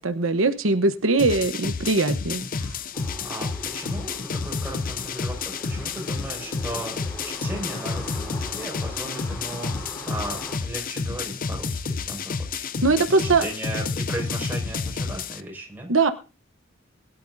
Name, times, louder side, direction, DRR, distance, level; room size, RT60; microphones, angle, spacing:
voice 1, 0.0-2.7 12.8-13.4 15.9-16.1, right 3 dB, 85° right, 9 dB, 1.0 m, -21 dB
sound 1, 1.2-15.4, left 4 dB, 45° left, 0.6 m, -30 dB
sound 2, 2.9-10.6, equal, 15° left, 4.2 m, -41 dB
voice 2, 3.2-12.6 12.9-15.9, right 1 dB, 10° right, -2 dB, 5.6 m, -36 dB
21.0 x 12.0 x 2.7 m, 0.32 s
head